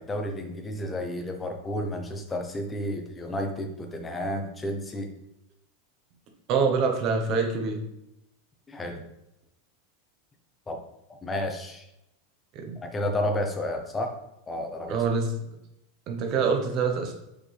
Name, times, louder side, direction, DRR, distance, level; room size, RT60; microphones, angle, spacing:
voice 1, 0.0-5.1 8.7-9.0 10.7-10.8 11.2-11.8 12.8-14.1 14.5-15.0, left 1 dB, 10° left, 4 dB, 0.7 m, -31 dB
voice 2, 6.5-7.8 12.5-12.8 14.9-15.3 16.1-17.1, right 5 dB, 35° right, 3 dB, 1.0 m, -25 dB
5.7 x 5.1 x 3.4 m, 0.85 s
supercardioid pair, 175°, 0 cm